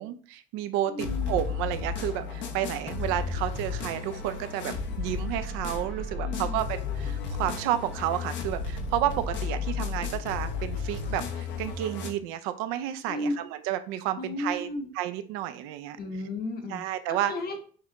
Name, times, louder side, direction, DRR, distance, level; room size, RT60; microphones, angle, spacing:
voice 1, 0.0-14.7 14.9-16.0 16.7-17.3, right 12 dB, 85° right, 10 dB, 0.5 m, -31 dB
voice 2, 0.9-1.3 6.2-6.6 13.1-13.3 14.2-14.9 16.0-16.8 17.3-17.6, left 2 dB, 50° left, 4 dB, 1.1 m, -33 dB
sound 1, 1.0-12.1, left 5 dB, 65° left, 0.8 m, -33 dB
6.4 x 2.5 x 2.9 m, 0.43 s
supercardioid pair, 80°, 20 cm